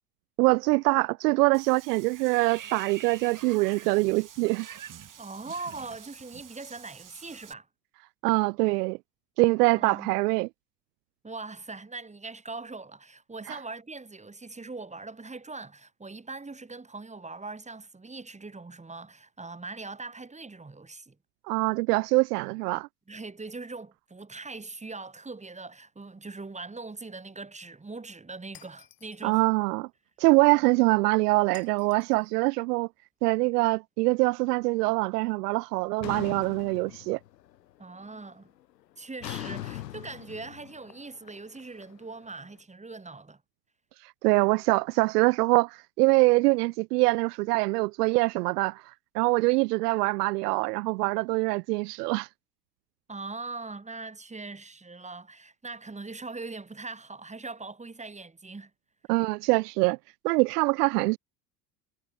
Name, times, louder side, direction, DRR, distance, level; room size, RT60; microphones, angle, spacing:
voice 1, 0.4-4.7 8.2-9.0 9.4-10.5 13.5-13.6 21.5-22.9 29.2-29.9 30.2-32.9 33.2-37.2 44.0-48.8 49.1-52.3 59.1-60.0 60.2-61.2, right 24 dB, 70° right, 0.6 m, -24 dB
Water / Bathtub (filling or washing), 1.5-7.5, right 9 dB, 40° right, 7.9 m, -46 dB
voice 2, 5.2-7.7 9.7-10.2 11.2-21.2 23.1-29.4 37.8-38.5 39.0-43.4 53.1-58.7, right 3 dB, 15° right, 3.8 m, -41 dB
Shatter, 28.5-29.3 31.5-32.3, left 11 dB, 45° left, 4.3 m, -54 dB
sound 1, 36.0-37.6 37.9-38.3 39.2-42.3, left 13 dB, 85° left, 2.1 m, -40 dB
hypercardioid pair, 75°, 49 cm